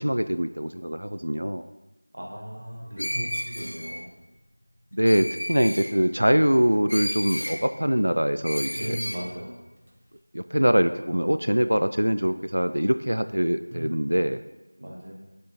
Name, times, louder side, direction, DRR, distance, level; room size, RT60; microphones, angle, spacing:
voice 1, 0.0-1.7 3.0-3.1 4.9-9.0 10.3-14.4, equal, 85° right, 10 dB, 0.3 m, -23 dB
voice 2, 2.1-4.1 8.7-9.6 13.7-13.9 14.8-15.1, equal, 25° right, -2 dB, 1.0 m, -36 dB
Screech, 3.0-4.0 5.1-5.9 6.9-7.6 8.4-9.2, equal, 85° left, 1.6 m, -32 dB
6.4 x 5.4 x 4.3 m, 1.1 s
figure-of-eight pair, 180°, 0 cm